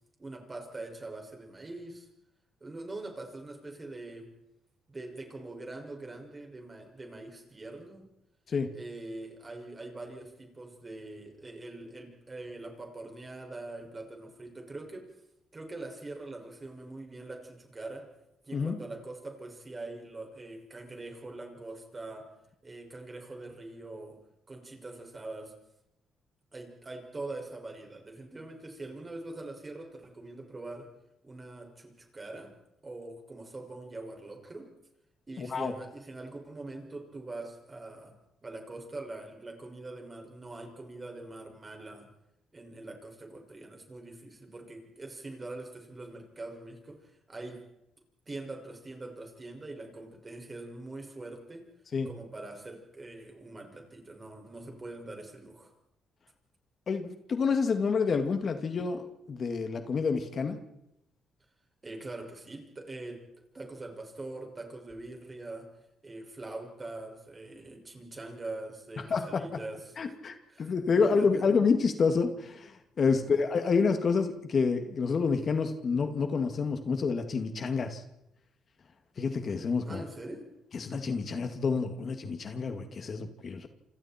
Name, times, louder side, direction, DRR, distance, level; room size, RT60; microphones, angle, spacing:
voice 1, 0.2-2.1 2.6-4.3 4.9-8.1 8.7-15.1 15.5-18.1 18.4-22.3 22.6-24.2 24.5-25.5 26.5-30.9 31.2-32.6 32.8-34.7 35.3-38.2 38.4-42.1 42.5-47.6 48.3-51.7 52.1-55.7 61.8-63.3 63.5-65.7 66.0-70.1 70.5-71.4 73.0-73.3 79.8-80.5, right 2 dB, 25° right, 3 dB, 6.1 m, -43 dB
voice 2, 35.4-35.7 51.9-52.1 56.9-60.6 69.1-69.4 70.0-78.0 79.2-80.0 80.7-83.7, left 5 dB, 45° left, 7 dB, 2.3 m, -28 dB
28.0 x 26.5 x 4.5 m, 0.85 s
cardioid pair, 90°, 0 cm